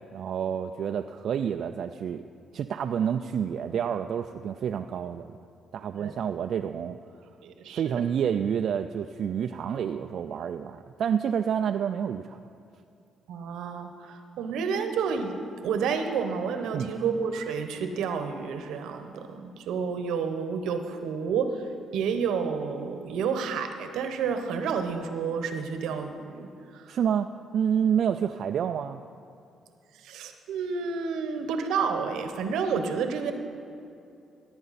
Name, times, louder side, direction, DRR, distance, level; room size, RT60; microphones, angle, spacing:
voice 1, 0.1-2.2 2.5-5.4 5.7-7.0 7.7-12.4 16.7-16.9 26.9-29.0, right 8 dB, 65° right, 6 dB, 0.3 m, -28 dB
voice 2, 7.4-8.0 13.3-15.4 15.6-26.9 30.0-33.3, right 6 dB, 85° right, 7 dB, 0.9 m, -30 dB
16.0 x 8.8 x 4.2 m, 2.6 s
cardioid pair, 90°, 0 cm